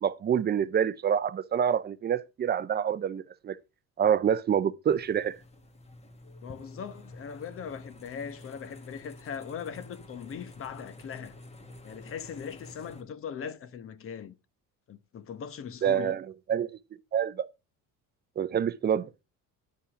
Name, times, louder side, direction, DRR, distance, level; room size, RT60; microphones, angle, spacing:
voice 1, 0.0-3.6 4.0-5.4 15.8-16.7 17.1-17.5 18.4-19.1, right 8 dB, 30° right, 0.6 m, -27 dB
sound 1, 4.9-13.0, left 1 dB, 20° left, 1.6 m, -49 dB
voice 2, 6.4-11.4 11.8-14.3 14.9-16.2, left 7 dB, 40° left, 1.0 m, -40 dB
10.0 x 5.4 x 5.0 m
cardioid pair, 140°, 32 cm